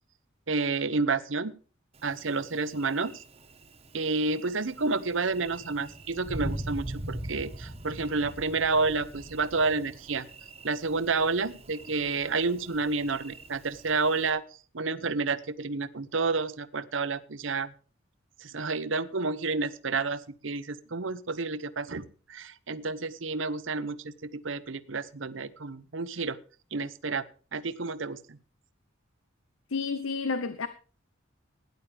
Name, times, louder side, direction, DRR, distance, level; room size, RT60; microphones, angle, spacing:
voice 1, 0.5-1.5 2.0-3.2 3.9-10.3 10.6-14.4 14.7-17.7 18.4-26.4 26.7-27.2 27.5-28.4, right 4 dB, 65° right, 0.9 m, -30 dB
Thunder, 1.9-14.3, right 1 dB, 30° right, 1.3 m, -42 dB
voice 2, 29.7-30.7, left 4 dB, 90° left, 0.9 m, -30 dB
17.0 x 10.5 x 3.4 m
head